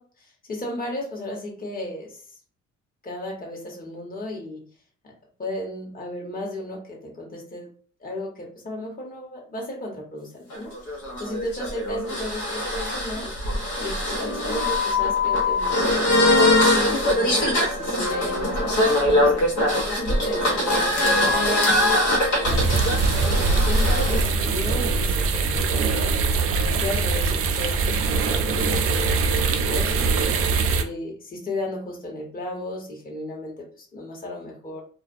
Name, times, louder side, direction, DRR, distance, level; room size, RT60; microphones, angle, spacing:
voice 1, 0.0-2.2 3.0-4.6 5.0-5.1 5.4-7.7 8.0-10.7 11.2-13.3 13.8-19.4 19.9-21.6 22.3-26.1 26.7-29.4 29.7-30.4 30.8-34.8, left 1 dB, 30° left, -2 dB, 1.0 m, -34 dB
sound 1, 10.5-24.2, left 1 dB, 80° left, 0.9 m, -22 dB
sound 2, 22.4-30.8, right 4 dB, 50° right, 0.4 m, -22 dB
2.3 x 2.2 x 2.5 m, 0.43 s
cardioid pair, 90°, 30 cm